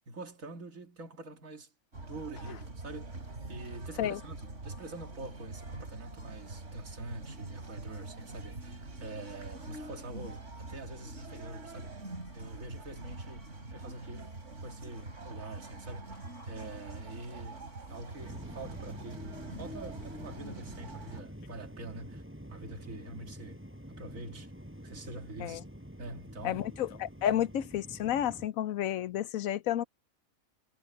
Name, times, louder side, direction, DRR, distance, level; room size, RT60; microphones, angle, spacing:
voice 1, 0.0-1.7 2.0-3.2 3.5-12.0 12.3-22.2 22.5-23.6 23.9-24.5 24.8-25.6 26.0-26.7, right 2 dB, 80° right, 2.4 m, -45 dB
sound 1, 1.9-21.2, right 2 dB, 60° right, 3.4 m, -45 dB
sound 2, 18.2-28.5, equal, 10° right, 7.1 m, -47 dB
voice 2, 26.4-29.8, left 11 dB, 90° left, 1.1 m, -31 dB
omnidirectional pair, 1.4 m